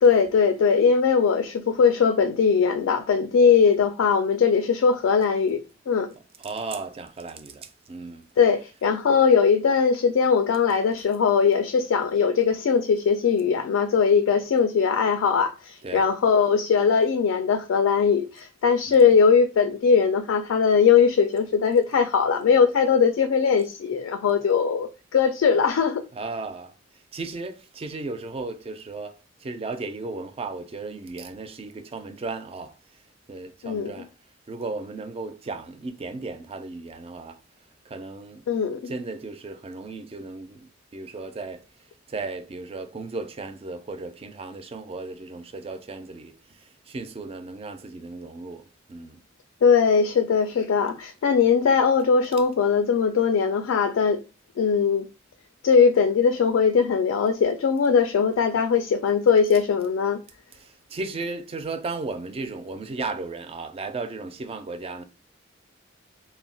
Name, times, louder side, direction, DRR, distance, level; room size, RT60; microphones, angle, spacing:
voice 1, 0.0-6.1 8.4-26.1 33.6-34.1 38.5-38.9 49.6-54.2 54.6-55.1 55.6-60.2, left 6 dB, 85° left, 0.3 m, -20 dB
voice 2, 6.4-8.2 15.8-16.1 18.9-19.1 26.1-26.7 27.1-32.7 33.3-34.1 34.5-37.4 37.9-38.4 38.8-41.6 42.1-46.3 46.9-49.2 60.6-65.0, right 3 dB, 30° right, 0.3 m, -35 dB
2.3 x 2.1 x 3.7 m
head